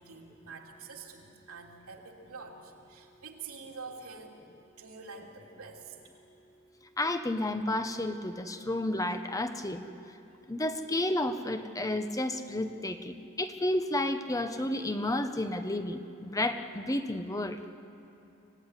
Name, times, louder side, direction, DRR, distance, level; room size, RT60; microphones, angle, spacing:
voice 1, 0.0-4.3 4.8-5.9, right 4 dB, 80° right, 0 dB, 3.2 m, -46 dB
voice 2, 7.0-9.8 10.5-17.6, left 1 dB, 15° left, 8 dB, 0.9 m, -31 dB
25.5 x 16.5 x 9.8 m, 2.9 s
head